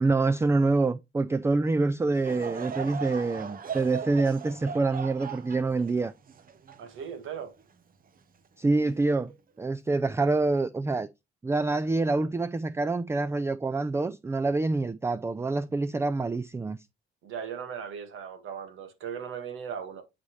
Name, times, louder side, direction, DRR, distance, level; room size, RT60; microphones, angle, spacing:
voice 1, 0.0-6.1 8.6-9.3 9.6-11.1 11.4-16.8, right 3 dB, 15° right, 0.4 m, -26 dB
Laughter / Crowd, 2.1-7.6 8.2-8.3 9.1-9.3, right 7 dB, 45° right, 0.9 m, -39 dB
voice 2, 6.8-7.5 17.2-20.0, right 7 dB, 80° right, 1.9 m, -38 dB
11.0 x 4.2 x 3.2 m
cardioid pair, 90°, 20 cm